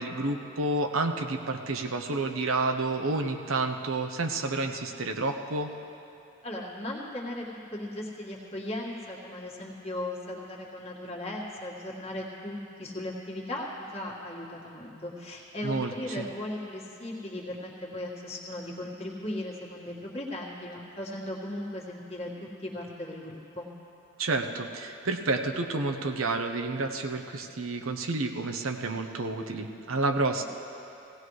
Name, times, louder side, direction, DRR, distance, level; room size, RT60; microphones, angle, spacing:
voice 1, 0.0-5.7 15.6-16.3 24.2-30.4, right 3 dB, 90° right, 5 dB, 0.9 m, -30 dB
voice 2, 6.4-7.5 7.7-23.7, left 1 dB, 30° left, -4 dB, 1.8 m, -37 dB
17.5 x 17.5 x 3.2 m, 2.9 s
head